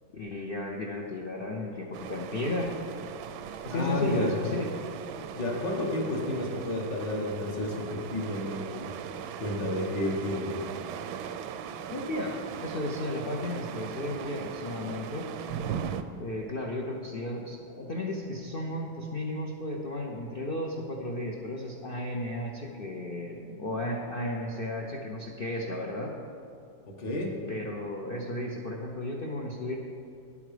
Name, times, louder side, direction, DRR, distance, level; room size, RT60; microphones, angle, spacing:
voice 1, 0.1-2.7 3.6-4.8 11.9-15.3 16.2-26.1 27.5-29.8, left 1 dB, 85° left, 0 dB, 0.5 m, -34 dB
sound 1, 1.9-16.0, right 8 dB, 85° right, 1.3 m, -39 dB
voice 2, 3.7-4.4 5.3-8.9 9.4-10.6 26.8-27.4, left 1 dB, 65° left, 0 dB, 2.0 m, -31 dB
11.0 x 8.4 x 5.0 m, 2.5 s
omnidirectional pair, 2.1 m